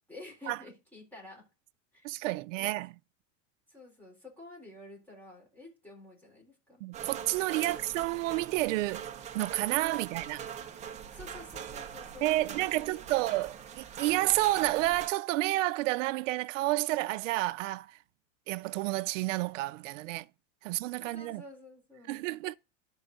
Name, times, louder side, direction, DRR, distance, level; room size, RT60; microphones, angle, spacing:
voice 1, 0.1-1.4 1.9-2.1 2.5-2.7 3.7-6.8 7.5-7.8 11.1-13.3 21.0-22.2, left 2 dB, 5° left, 4.0 m, -50 dB
voice 2, 2.0-2.9 6.8-9.1 9.3-10.4 12.2-18.0 18.5-20.3 20.6-21.4 22.1-22.6, right 18 dB, 90° right, 0.5 m, -30 dB
sound 1, 6.9-15.1, right 8 dB, 20° right, 0.7 m, -42 dB
11.5 x 4.5 x 3.9 m
supercardioid pair, 165°, 36 cm